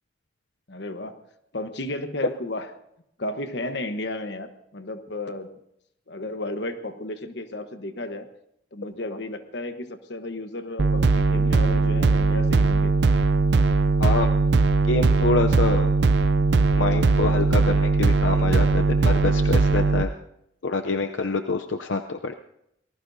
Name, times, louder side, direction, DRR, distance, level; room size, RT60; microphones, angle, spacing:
voice 1, 0.7-1.2 1.5-2.7 3.2-5.5 6.1-8.3 8.7-13.0, left 2 dB, 70° left, 8 dB, 1.2 m, -33 dB
sound 1, 10.8-20.0, right 3 dB, 65° right, 0.5 m, -20 dB
voice 2, 14.9-15.9 16.7-20.1 20.6-22.3, left 3 dB, 85° left, 6 dB, 0.7 m, -26 dB
27.5 x 19.0 x 2.7 m, 0.78 s
head